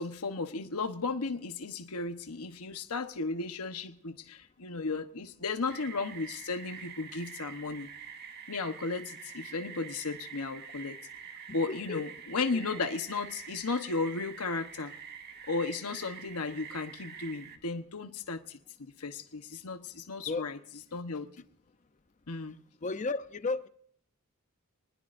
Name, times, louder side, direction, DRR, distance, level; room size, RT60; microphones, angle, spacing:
voice 1, 0.0-7.9 8.5-11.0 11.5-14.9 15.5-20.6 20.9-21.4 22.3-22.6, left 3 dB, 75° left, 1.1 m, -35 dB
sound 1, 5.7-17.6, right 6 dB, 45° right, 1.6 m, -46 dB
voice 2, 22.8-23.7, left 3 dB, 35° left, 0.6 m, -33 dB
25.0 x 20.0 x 2.6 m
head